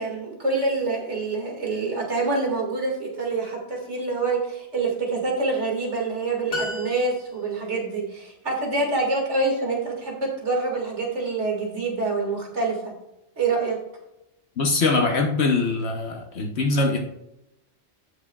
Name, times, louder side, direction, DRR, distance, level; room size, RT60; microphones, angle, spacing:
voice 1, 0.0-12.9 13.4-13.8, right 3 dB, 90° right, 0 dB, 2.4 m, -26 dB
sound 1, 6.5-7.6, left 2 dB, 20° left, 3.4 m, -32 dB
voice 2, 14.6-17.0, left 3 dB, 70° left, 2 dB, 1.2 m, -22 dB
17.0 x 5.7 x 2.3 m, 0.87 s
omnidirectional pair, 1.2 m